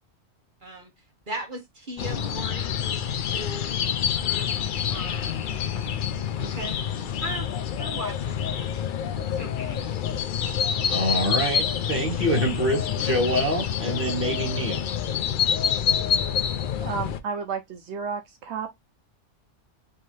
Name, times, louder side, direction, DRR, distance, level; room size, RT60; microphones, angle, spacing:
voice 1, 1.3-3.8 4.2-4.6 4.9-5.6 6.4-7.0 7.2-7.5 7.8-8.7 9.2-9.8, right 1 dB, 45° right, 1.3 m, -38 dB
sound 1, 2.0-17.2, left 8 dB, 60° left, 0.6 m, -27 dB
voice 2, 10.9-14.8, equal, 10° right, 1.5 m, -26 dB
voice 3, 16.8-18.7, right 6 dB, 75° right, 0.8 m, -32 dB
4.4 x 2.7 x 3.2 m
omnidirectional pair, 1.2 m